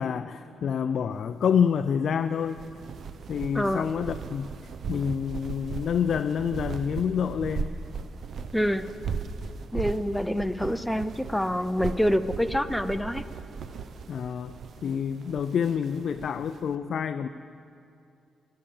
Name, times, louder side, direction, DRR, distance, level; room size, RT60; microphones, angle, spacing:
voice 1, 0.0-2.6 3.3-4.5 4.9-7.7 14.1-17.3, left 7 dB, 65° left, 9 dB, 0.3 m, -27 dB
sound 1, 2.4-16.6, right 5 dB, 65° right, 0.5 m, -38 dB
voice 2, 3.5-3.9 8.5-8.9 9.7-13.2, equal, 5° left, 10 dB, 0.5 m, -26 dB
12.5 x 9.9 x 7.1 m, 2.5 s
cardioid pair, 75°, 0 cm